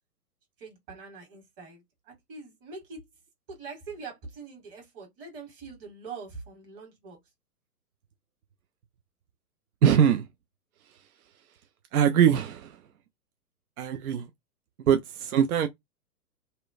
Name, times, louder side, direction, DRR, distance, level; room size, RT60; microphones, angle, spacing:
voice 1, 0.6-3.1 3.5-7.2, right 4 dB, 35° right, 1.6 m, -43 dB
voice 2, 9.8-10.3 11.9-12.8 13.8-14.3 14.9-15.7, right 9 dB, 65° right, 0.5 m, -22 dB
2.8 x 2.1 x 2.4 m
figure-of-eight pair, 120°, 46 cm